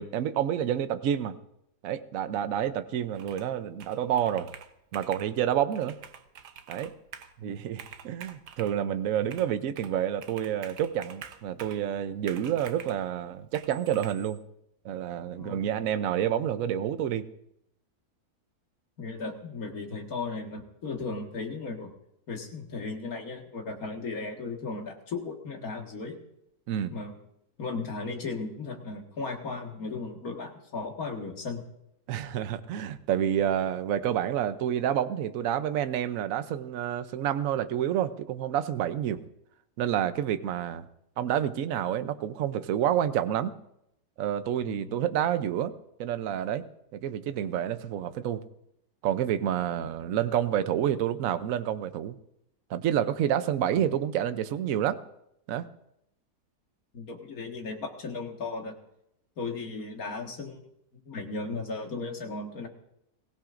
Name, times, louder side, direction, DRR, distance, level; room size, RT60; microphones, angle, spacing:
voice 1, 0.0-1.4 1.8-4.5 4.9-6.0 6.7-6.9 7.4-14.4 14.8-17.2 26.7-26.9 32.1-39.2 39.8-40.9 41.2-43.5 44.2-45.7 46.0-46.6 46.9-48.4 49.0-52.2 52.7-55.0 55.5-55.7, right 10 dB, 65° right, 11 dB, 1.0 m, -29 dB
Computer keyboard, 3.1-3.5 3.8-5.3 5.7-7.3 7.7-8.8 9.3-10.0 10.2-11.9 12.3-13.0 13.5-14.1, right 8 dB, 90° right, 1.4 m, -46 dB
voice 2, 19.0-21.9 22.3-26.2 26.9-27.2 27.6-31.6 44.6-45.0 53.7-53.8 56.9-58.7 59.4-60.6 61.1-62.7, left 3 dB, 60° left, 2 dB, 2.2 m, -36 dB
22.0 x 16.0 x 2.6 m, 0.78 s
omnidirectional pair, 1.7 m